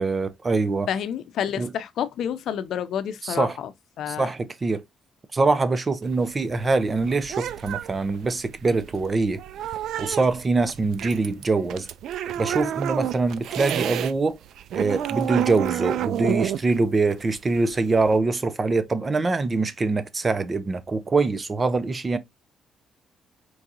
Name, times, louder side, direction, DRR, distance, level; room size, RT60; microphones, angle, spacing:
voice 1, 0.0-0.9 1.6-1.7 3.2-3.5 4.1-4.8 5.3-9.4 10.0-11.9 12.4-14.4 14.7-22.2, right 3 dB, 25° right, 0.6 m, -24 dB
voice 2, 0.9-3.7 4.0-4.3, left 9 dB, 70° left, 0.6 m, -29 dB
sound 1, 6.0-14.1 14.4-18.2, right 11 dB, 75° right, 0.3 m, -30 dB
4.6 x 3.7 x 2.7 m
cardioid pair, 135°, 0 cm